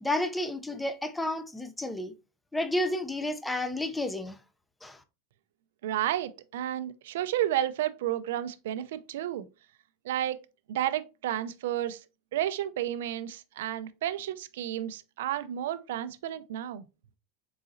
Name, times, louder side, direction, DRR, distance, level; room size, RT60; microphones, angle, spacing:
voice 1, 0.0-2.1 2.5-4.4 4.8-5.0, left 1 dB, 5° left, 0.4 m, -31 dB
voice 2, 5.8-9.5 10.0-10.4 10.7-12.0 12.3-16.8, right 12 dB, 85° right, 0.4 m, -31 dB
3.9 x 3.8 x 2.5 m
supercardioid pair, 150°, 0 cm